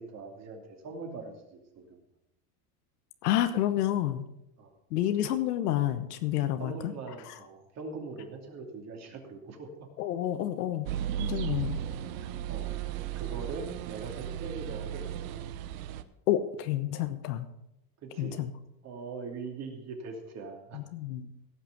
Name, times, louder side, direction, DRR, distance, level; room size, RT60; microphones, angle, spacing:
voice 1, 0.0-2.0 4.6-4.7 6.6-9.9 12.2-12.7 13.1-15.4 18.0-18.4 18.8-20.8, right 4 dB, 35° right, 2 dB, 2.6 m, -42 dB
voice 2, 3.2-4.2 4.9-6.9 7.3-7.4 10.0-10.9 11.2-11.8 16.3-17.5 18.2-18.5 20.7-21.3, left 12 dB, 90° left, 9 dB, 1.1 m, -29 dB
sound 1, 10.9-16.0, right 10 dB, 65° right, 0.9 m, -35 dB
17.0 x 6.1 x 5.9 m, 0.86 s
supercardioid pair, 135°, 45 cm